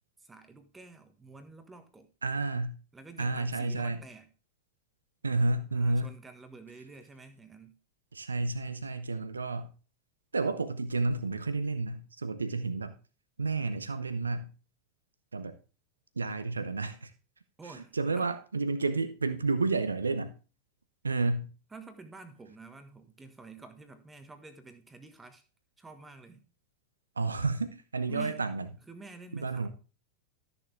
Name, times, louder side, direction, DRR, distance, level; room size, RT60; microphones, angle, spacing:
voice 1, 0.2-2.1 2.9-4.3 5.7-7.7 17.6-18.3 21.7-25.4 25.8-26.5 28.1-28.5 28.9-29.7, right 4 dB, 10° right, 1.4 m, -49 dB
voice 2, 2.2-2.8 3.2-4.0 5.2-6.1 8.1-9.7 10.3-12.9 13.4-14.5 15.3-15.6 16.2-17.1 17.9-20.3 21.0-21.5 27.2-28.6 29.3-29.7, right 3 dB, 75° right, 0.8 m, -31 dB
13.5 x 6.9 x 3.4 m
figure-of-eight pair, 90°, 0 cm